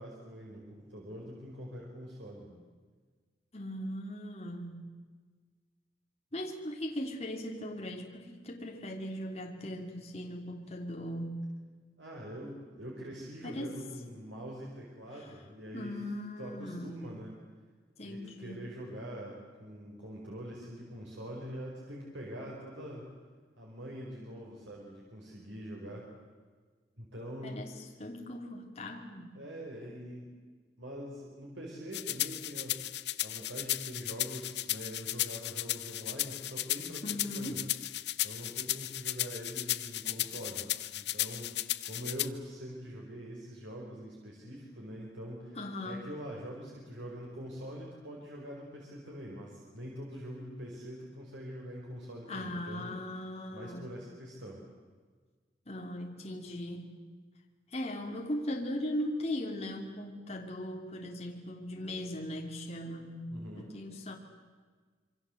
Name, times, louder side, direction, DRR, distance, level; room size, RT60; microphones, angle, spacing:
voice 1, 0.0-2.6 12.0-16.0 16.4-17.4 18.0-23.1 23.6-26.1 27.0-27.7 29.3-30.3 30.8-32.9 33.2-37.6 38.2-45.6 45.8-52.9 53.5-54.6 63.3-63.7, equal, 85° right, -2 dB, 4.9 m, -44 dB
voice 2, 3.5-4.9 6.3-11.4 13.4-13.8 15.7-17.0 18.0-18.6 27.4-29.4 37.0-37.7 45.6-46.1 52.3-53.9 55.7-56.9 57.7-63.3 63.6-64.1, left 1 dB, 35° left, 1 dB, 3.0 m, -39 dB
sound 1, 31.9-42.3, left 14 dB, 65° left, 0.9 m, -35 dB
27.0 x 24.5 x 7.8 m, 1.5 s
head